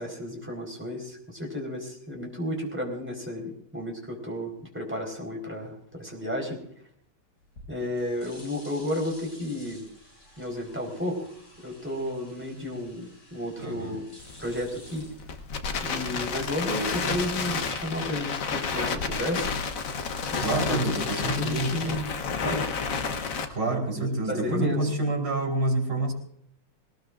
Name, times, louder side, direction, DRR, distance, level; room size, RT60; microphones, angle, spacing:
voice 1, 0.0-6.6 7.7-9.8 10.4-11.3 11.6-14.1 14.4-15.0 15.8-19.5 20.3-20.8 21.4-22.6 24.3-24.9, left 1 dB, 5° right, -1 dB, 4.2 m, -32 dB
sound 1, 7.4-15.8, left 1 dB, 70° left, 8.5 m, -52 dB
voice 2, 13.6-14.0 20.4-22.0 23.5-26.1, right 2 dB, 80° right, 3 dB, 3.7 m, -28 dB
Crackle, 14.2-23.4, left 5 dB, 55° left, 1.3 m, -31 dB
21.5 x 18.5 x 2.5 m, 0.66 s
omnidirectional pair, 1.9 m